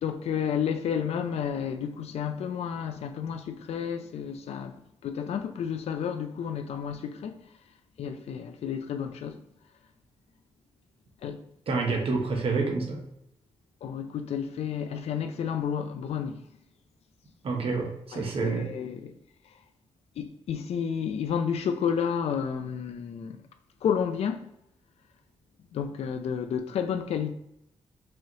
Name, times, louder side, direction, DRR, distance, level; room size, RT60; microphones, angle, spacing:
voice 1, 0.0-7.4 8.0-9.4 11.2-11.4 13.8-16.4 18.1-19.1 20.2-23.4 23.8-24.5 25.7-27.3, left 7 dB, 75° left, 0.4 m, -31 dB
voice 2, 11.7-13.0 17.4-18.7, right 4 dB, 60° right, 1.0 m, -28 dB
4.7 x 3.0 x 2.9 m
cardioid pair, 80°, 11 cm